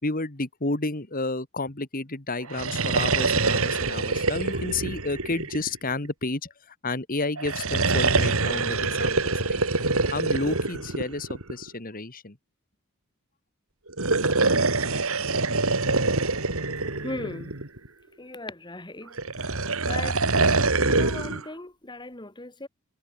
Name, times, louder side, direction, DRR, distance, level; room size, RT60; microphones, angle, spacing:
voice 1, 0.0-6.5 6.8-9.6 10.1-12.4, left 2 dB, 40° left, 2.2 m, -31 dB
sound 1, 2.4-6.1 7.4-11.7 13.9-17.9 19.2-21.4, right 3 dB, 65° right, 3.3 m, -25 dB
voice 2, 17.0-17.6 18.2-19.2 19.5-19.6 19.9-20.2 20.8-22.7, left 2 dB, 20° left, 2.2 m, -37 dB
head